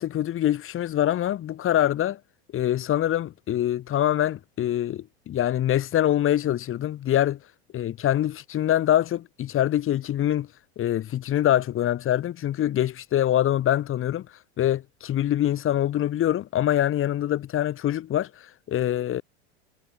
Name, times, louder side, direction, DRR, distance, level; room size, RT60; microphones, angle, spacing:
voice 1, 0.0-2.2 2.5-7.4 7.7-10.5 10.8-14.3 14.6-19.2, left 12 dB, 40° left, 4.3 m, -24 dB
hypercardioid pair, 100°, 33 cm